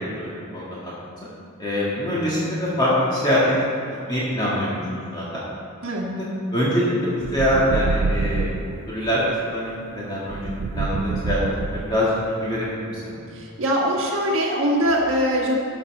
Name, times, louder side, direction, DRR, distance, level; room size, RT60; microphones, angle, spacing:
voice 1, 0.2-0.9 1.6-3.6 4.1-5.3 6.1-6.2 6.5-8.5 8.9-9.2 9.5-13.0, equal, 20° left, -8 dB, 1.9 m, -24 dB
sound 1, 7.2-8.8 10.3-12.1, right 3 dB, 90° right, 0.4 m, -26 dB
voice 2, 13.3-15.6, equal, 65° right, -2 dB, 1.5 m, -22 dB
13.0 x 5.7 x 6.0 m, 2.6 s
head